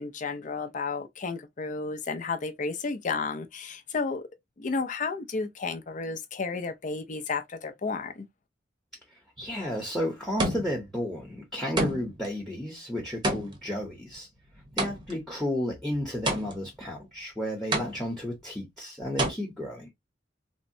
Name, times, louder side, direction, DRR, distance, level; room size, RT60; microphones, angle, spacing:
voice 1, 0.0-4.2 4.6-8.3, left 4 dB, 45° left, 0.5 m, -32 dB
voice 2, 9.4-14.3 14.8-19.9, left 1 dB, ahead, 0.9 m, -32 dB
sound 1, 9.4-9.8 10.4-10.9 11.8-12.3 13.2-15.3 16.3-16.8 17.7-18.3 19.2-19.3, right 1 dB, 25° right, 0.8 m, -30 dB
3.5 x 2.1 x 2.6 m
head